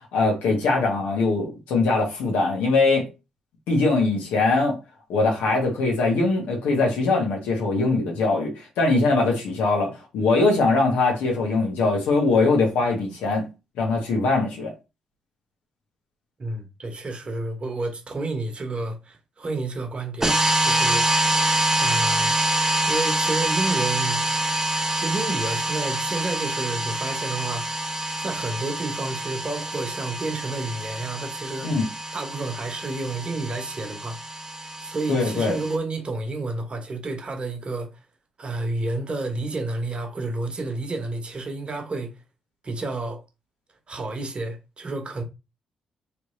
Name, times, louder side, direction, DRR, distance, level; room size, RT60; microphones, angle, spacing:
voice 1, 0.1-3.1 3.7-4.8 5.1-13.5 13.8-14.7 31.6-31.9 35.1-35.6, left 3 dB, 75° left, 1.4 m, -22 dB
voice 2, 16.4-21.0 21.7-22.3 22.8-24.3 24.9-27.7 28.2-31.7 32.1-34.2 34.8-37.9 38.4-42.1 42.6-43.2 43.9-45.2, right 2 dB, 40° right, 1.1 m, -30 dB
sound 1, 20.2-35.8, right 1 dB, 20° right, 1.1 m, -26 dB
3.3 x 3.3 x 3.1 m
hypercardioid pair, 45°, 3 cm